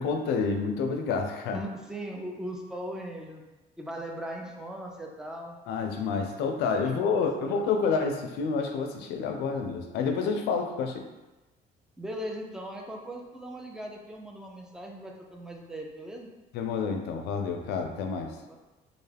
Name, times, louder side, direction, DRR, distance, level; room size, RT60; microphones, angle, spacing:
voice 1, 0.0-1.6 5.7-11.0 16.5-18.3, left 5 dB, 80° left, 5 dB, 0.4 m, -29 dB
voice 2, 1.5-3.4 3.8-5.6 7.1-7.7 12.0-16.3 18.5-18.6, equal, 5° right, 0 dB, 0.4 m, -39 dB
2.4 x 2.2 x 3.2 m, 1.1 s
cardioid pair, 110°, 17 cm